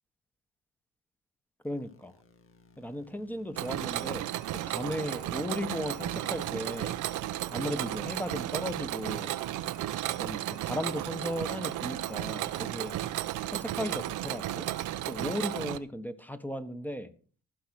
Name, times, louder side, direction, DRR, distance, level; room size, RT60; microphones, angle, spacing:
sound 1, 1.6-11.6, left 2 dB, 45° left, 2.0 m, -59 dB
voice 1, 1.6-2.1 2.8-7.0 7.5-9.4 10.2-13.0 13.5-14.7 15.1-17.1, left 1 dB, 5° left, 10 dB, 1.4 m, -36 dB
Mechanisms, 3.6-15.8, right 14 dB, 90° right, 0.8 m, -34 dB
15.0 x 5.7 x 6.5 m, 0.41 s
cardioid pair, 90°, 30 cm